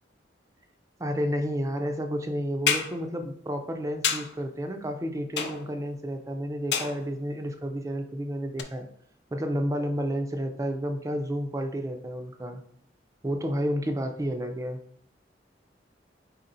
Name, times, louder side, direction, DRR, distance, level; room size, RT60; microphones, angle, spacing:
voice 1, 1.0-8.9 9.3-12.6 13.2-14.8, equal, 20° right, 5 dB, 0.4 m, -31 dB
sound 1, 2.7-3.0 4.0-4.4 5.4-5.8 6.7-7.2 8.6-8.7, left 7 dB, 65° left, 0.5 m, -28 dB
4.3 x 4.2 x 2.6 m, 0.64 s
head